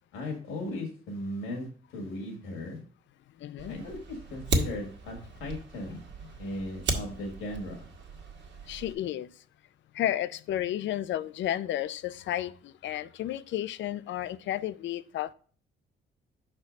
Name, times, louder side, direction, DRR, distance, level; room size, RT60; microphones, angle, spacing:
voice 1, 0.1-1.7 1.9-2.8 3.7-6.1 6.4-7.9, left 1 dB, 85° left, 2.0 m, -37 dB
voice 2, 3.4-3.8 4.5-4.6 5.9-6.0 8.7-9.3 9.9-15.3, left 12 dB, 70° left, 0.5 m, -32 dB
Fire, 3.6-8.9, right 2 dB, 65° right, 1.5 m, -35 dB
5.8 x 4.4 x 5.2 m
cardioid pair, 90°, 20 cm